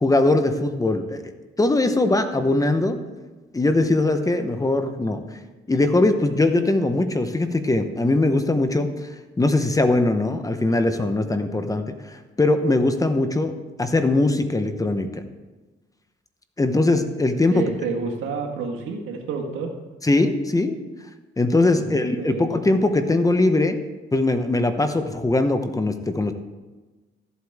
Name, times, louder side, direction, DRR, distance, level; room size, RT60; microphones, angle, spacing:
voice 1, 0.0-1.2 1.6-3.0 3.5-5.2 5.7-8.9 9.4-13.5 13.8-15.2 16.6-17.6 20.0-20.8 21.4-23.8 24.1-26.3, left 2 dB, 15° left, 8 dB, 0.9 m, -21 dB
voice 2, 17.5-19.7 21.8-22.5, right 5 dB, 85° right, 2 dB, 1.6 m, -29 dB
14.0 x 8.1 x 3.5 m, 1.2 s
cardioid pair, 90°, 20 cm